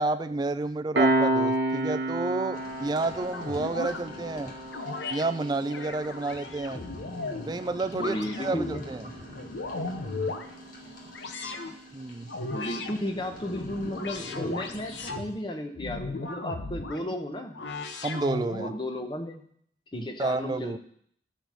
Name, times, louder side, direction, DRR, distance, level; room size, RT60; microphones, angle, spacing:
voice 1, 0.0-4.5 5.1-6.8 7.5-9.0 11.9-12.3 18.0-18.7 19.9-20.8, right 3 dB, 25° right, 11 dB, 0.3 m, -30 dB
Piano, 0.9-12.0, right 1 dB, 70° right, 1.1 m, -32 dB
sound 1, 2.5-15.1, left 1 dB, 45° left, 1.9 m, -46 dB
sound 2, 3.3-4.0 4.7-5.2 5.7-7.5 7.9-8.8 9.3-10.5 11.1-11.7 12.3-12.9 13.4-15.3 15.8-17.0 17.5-18.8, left 3 dB, 80° left, 0.8 m, -36 dB
voice 2, 8.0-8.8 12.5-17.6 18.6-19.4 19.9-20.8, left 1 dB, 25° left, 5 dB, 1.0 m, -34 dB
12.5 x 4.3 x 6.2 m, 0.66 s
head